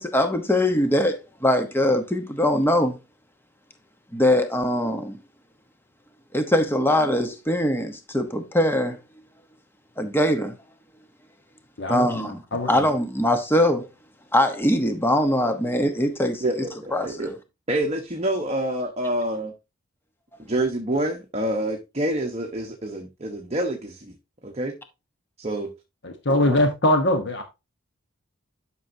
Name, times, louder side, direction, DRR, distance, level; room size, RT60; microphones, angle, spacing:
voice 1, 0.0-3.0 4.1-5.2 6.3-9.0 10.0-10.6 11.9-12.4 12.7-13.9 14.3-16.6 16.9-17.3, left 1 dB, 10° left, 0.9 m, -22 dB
voice 2, 11.8-12.8 26.0-27.4, left 1 dB, 55° left, 1.1 m, -22 dB
voice 3, 16.4-17.3 17.7-19.5 20.4-24.1 24.4-24.7 25.4-25.7 26.4-26.6, right 1 dB, 30° right, 1.0 m, -27 dB
11.0 x 6.1 x 2.7 m
head